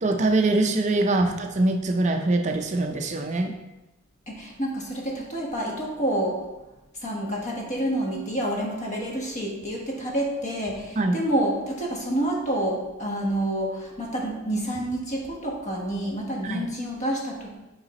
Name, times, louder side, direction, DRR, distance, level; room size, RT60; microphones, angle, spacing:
voice 1, 0.0-3.5 11.0-11.2 16.4-16.6, right 2 dB, 35° right, 4 dB, 0.5 m, -23 dB
voice 2, 4.3-6.4 7.0-17.5, right 1 dB, 35° left, -1 dB, 1.2 m, -28 dB
5.3 x 4.9 x 4.1 m, 1.0 s
head